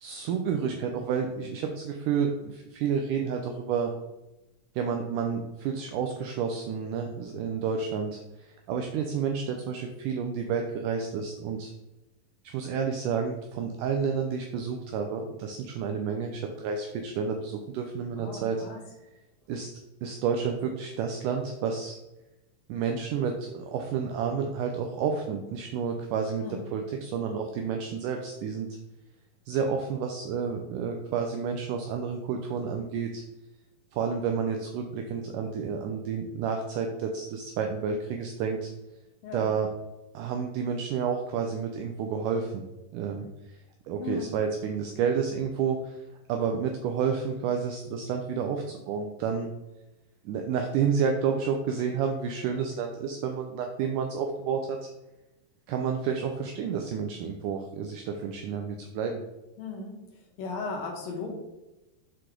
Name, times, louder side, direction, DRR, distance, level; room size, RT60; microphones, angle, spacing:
voice 1, 0.0-3.9 4.8-11.7 12.4-18.6 19.5-19.7 20.0-22.0 22.7-26.4 26.7-28.7 29.5-33.2 33.9-38.7 39.3-39.7 40.1-42.6 42.9-43.6 43.9-46.0 46.3-49.5 50.3-54.9 55.7-59.2, right 6 dB, 85° right, 3 dB, 1.8 m, -30 dB
voice 2, 18.2-18.8 26.4-26.6 39.2-39.5 44.0-44.3 59.6-60.0 60.4-61.3, left 4 dB, 75° left, 1 dB, 2.7 m, -36 dB
6.4 x 4.7 x 3.7 m, 1.0 s
omnidirectional pair, 4.2 m